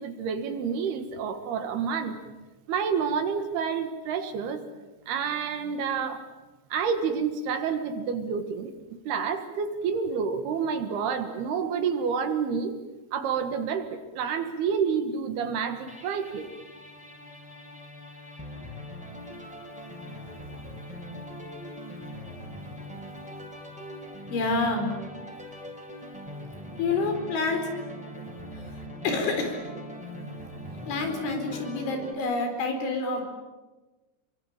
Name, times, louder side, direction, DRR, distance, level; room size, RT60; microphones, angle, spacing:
voice 1, 0.0-2.2 2.7-4.6 5.1-6.2 6.7-8.7 9.1-12.8 13.1-16.5, right 6 dB, 65° right, 8 dB, 3.3 m, -29 dB
sound 1, 15.9-32.1, equal, ahead, 5.0 m, -41 dB
voice 2, 24.3-24.9 26.8-27.7 29.0-29.6 30.8-33.2, left 3 dB, 80° left, 5 dB, 6.7 m, -27 dB
28.0 x 23.5 x 8.9 m, 1.2 s
omnidirectional pair, 5.4 m